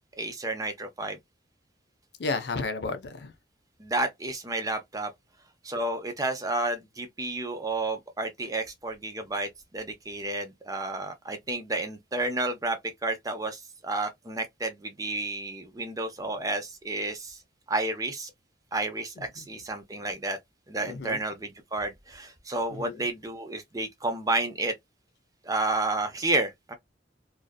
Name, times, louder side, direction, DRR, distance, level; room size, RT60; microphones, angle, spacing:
voice 1, 0.2-1.2 3.8-5.1 5.6-9.5 9.7-17.4 17.7-18.3 18.7-20.4 20.7-24.7 25.4-26.7, right 2 dB, 20° right, 0.5 m, -31 dB
voice 2, 2.2-3.3 19.4-19.5 20.8-21.2 22.7-23.0, left 3 dB, 65° left, 0.5 m, -32 dB
2.6 x 2.3 x 2.2 m
head